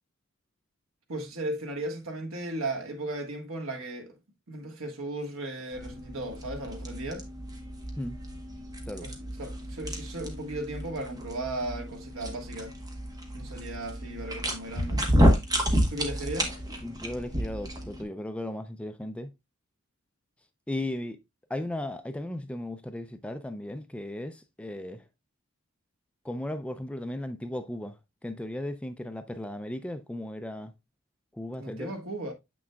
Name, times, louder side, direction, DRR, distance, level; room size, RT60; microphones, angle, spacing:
voice 1, 1.1-4.1 4.5-7.2 9.0-12.7 13.3-15.0 15.9-16.5 31.6-32.3, right 1 dB, 75° right, 1.5 m, -36 dB
sound 1, 5.7-18.0, equal, 20° right, 1.1 m, -30 dB
voice 2, 16.8-19.3 20.7-21.2 21.5-25.0 26.2-28.0 28.2-30.7 31.3-32.0, left 1 dB, 5° left, 0.4 m, -36 dB
7.3 x 6.1 x 2.3 m
head